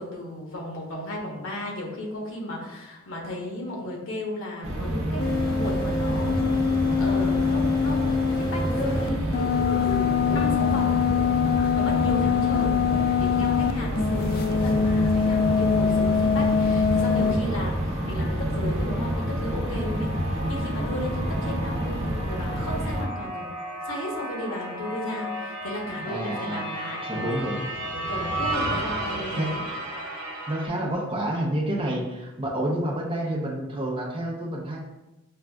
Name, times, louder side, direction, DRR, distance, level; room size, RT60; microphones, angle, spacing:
voice 1, 0.0-5.3 5.5-6.7 7.0-9.6 10.2-11.0 11.7-12.8 13.2-17.8 18.0-23.5 23.8-27.5 27.8-29.6, left 1 dB, 85° left, -1 dB, 0.9 m, -34 dB
sound 1, 4.6-23.1, equal, 85° right, 0.7 m, -28 dB
sound 2, 5.2-13.7 14.0-17.3, left 6 dB, 45° left, 0.3 m, -24 dB
sound 3, 14.7-30.7, right 1 dB, 45° right, 1.3 m, -35 dB
voice 2, 26.1-26.7 27.0-27.6 29.1-29.5 30.5-34.8, right 1 dB, 25° right, -2 dB, 0.6 m, -29 dB
6.0 x 2.3 x 2.2 m, 1.0 s
head